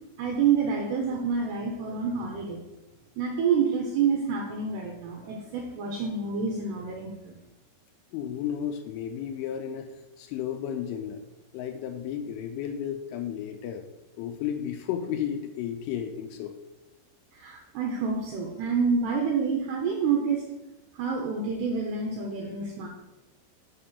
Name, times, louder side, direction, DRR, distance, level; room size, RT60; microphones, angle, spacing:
voice 1, 0.2-2.6 3.2-7.4 17.3-20.4 20.9-22.9, right 5 dB, 80° right, 0 dB, 2.4 m, -28 dB
voice 2, 8.1-9.9 10.2-11.2 11.5-13.9 14.2-16.5, left 9 dB, 80° left, 6 dB, 2.9 m, -33 dB
7.7 x 4.2 x 6.8 m, 0.99 s
omnidirectional pair, 5.9 m